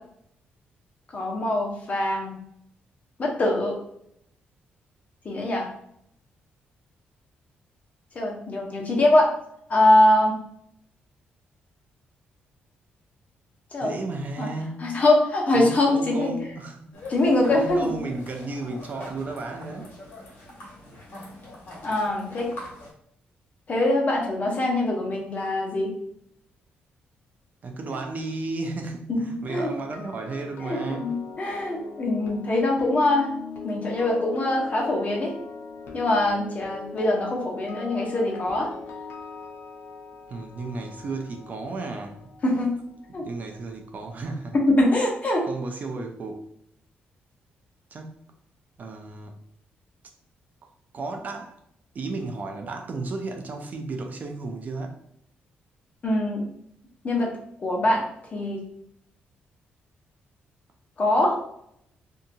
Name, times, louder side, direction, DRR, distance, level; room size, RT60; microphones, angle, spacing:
voice 1, 1.1-2.4 3.2-3.7 5.2-5.7 8.1-9.3 9.7-10.4 13.7-13.9 14.4-14.5 14.8-16.4 17.1-17.9 21.8-22.5 23.7-25.9 29.1-29.7 30.6-33.3 33.6-35.3 35.9-38.7 42.4-42.8 43.1-43.3 44.7-45.4 56.0-56.4 57.0-57.3 57.6-58.0 58.3-58.6 61.0-61.4, left 1 dB, 40° left, 0 dB, 0.8 m, -23 dB
voice 2, 13.8-15.0 15.5-17.0 17.5-20.0 27.6-31.1 40.3-42.7 43.1-44.6 45.4-46.5 47.9-48.3 48.8-49.4 50.9-51.6 51.9-55.0, right 3 dB, 45° right, 4 dB, 0.5 m, -34 dB
sound 1, 16.9-22.9, left 1 dB, 55° left, 1.2 m, -43 dB
sound 2, 29.7-43.8 44.0-44.3, left 5 dB, 85° left, 0.5 m, -40 dB
2.7 x 2.5 x 2.6 m, 0.72 s
cardioid pair, 100°, 4 cm